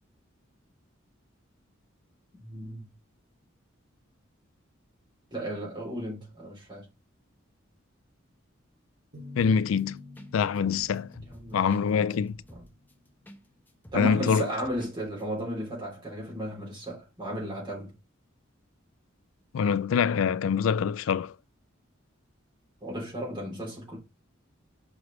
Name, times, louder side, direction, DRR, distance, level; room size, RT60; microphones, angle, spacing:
voice 1, 2.4-2.8 5.3-6.9 11.3-12.2 12.5-12.6 13.9-17.9 22.8-24.0, equal, 25° right, 3.2 m, -35 dB
sound 1, 9.1-12.8, left 2 dB, 60° right, 2.0 m, -48 dB
voice 2, 9.4-10.0 10.3-11.1 11.5-12.4 13.9-14.5 19.5-21.3, left 6 dB, 80° left, 0.3 m, -25 dB
sound 2, 9.4-9.8 10.2-10.3 10.6-13.4 13.7-14.9 15.2-15.3, equal, 10° left, 0.9 m, -50 dB
6.3 x 4.9 x 3.1 m
head